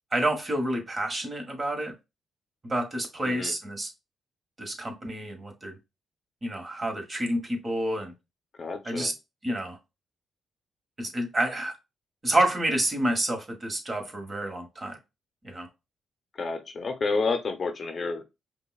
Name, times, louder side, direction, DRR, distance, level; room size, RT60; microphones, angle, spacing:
voice 1, 0.1-1.9 2.6-3.9 4.6-5.8 6.4-8.1 8.8-9.1 9.4-9.8 11.0-11.7 12.2-15.0 15.4-15.7, right 1 dB, 35° right, 1.3 m, -29 dB
voice 2, 3.2-3.5 8.6-9.1 16.3-18.2, left 4 dB, 50° left, 0.7 m, -30 dB
5.2 x 2.2 x 2.3 m
cardioid pair, 75°, 0 cm